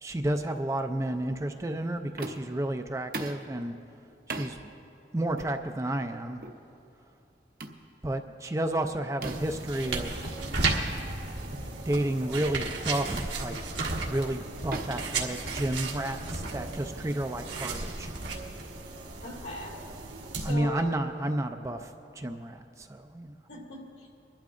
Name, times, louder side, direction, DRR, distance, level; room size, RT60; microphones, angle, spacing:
voice 1, 0.0-3.7 4.3-4.7 5.1-6.4 8.0-10.3 11.8-13.5 14.1-18.1 20.4-23.3, right 1 dB, 15° right, 6 dB, 0.4 m, -31 dB
sound 1, 2.2-2.6 3.1-3.5 4.3-4.5 5.4-5.6 6.4-6.6 7.6-7.8 9.2-9.6 10.8-11.0 11.4-11.6 12.3-12.6 13.5-13.8 14.7-15.9, right 2 dB, 50° right, 0.8 m, -39 dB
sound 2, 9.2-20.5, right 3 dB, 85° right, 1.5 m, -34 dB
voice 2, 19.2-19.8 20.4-20.9 23.5-24.1, left 2 dB, 75° left, -3 dB, 2.5 m, -39 dB
25.5 x 12.0 x 2.5 m, 2.6 s
head